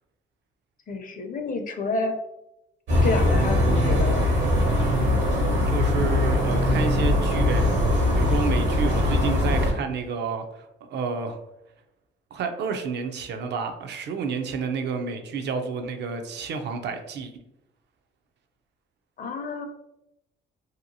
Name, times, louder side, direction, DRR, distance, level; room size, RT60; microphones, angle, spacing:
voice 1, 0.9-2.1 3.0-4.3 19.2-19.7, left 3 dB, 45° left, 5 dB, 0.5 m, -29 dB
sound 1, 2.9-9.7, left 1 dB, 75° right, 1.1 m, -21 dB
voice 2, 5.7-11.4 12.3-17.3, right 5 dB, 60° right, 7 dB, 0.4 m, -30 dB
2.8 x 2.3 x 2.6 m, 0.86 s
cardioid pair, 90°, 20 cm